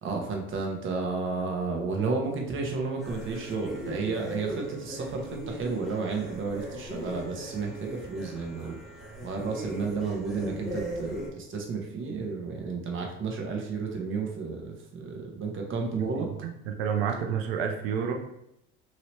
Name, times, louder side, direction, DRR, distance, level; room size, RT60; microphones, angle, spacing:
voice 1, 0.0-8.8 9.2-16.3, right 4 dB, 45° right, 1 dB, 1.0 m, -32 dB
sound 1, 3.0-11.3, right 1 dB, ahead, 1.2 m, -39 dB
voice 2, 16.1-18.1, right 7 dB, 80° right, 4 dB, 0.6 m, -30 dB
3.0 x 2.8 x 3.0 m, 0.80 s
hypercardioid pair, 75°, 29 cm